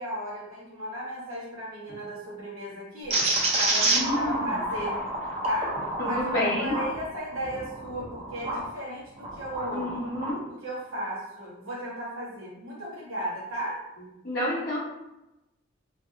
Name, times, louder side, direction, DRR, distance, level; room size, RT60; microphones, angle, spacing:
voice 1, 0.0-3.2 3.5-5.0 5.4-9.9 10.5-13.8, equal, 80° right, -5 dB, 1.0 m, -35 dB
sound 1, 3.1-8.7 9.2-10.4, right 2 dB, 30° right, 0.4 m, -29 dB
voice 2, 3.9-4.4 6.0-6.8 9.7-10.4 14.2-14.8, left 1 dB, 50° left, -8 dB, 0.7 m, -29 dB
2.6 x 2.6 x 2.4 m, 0.92 s
head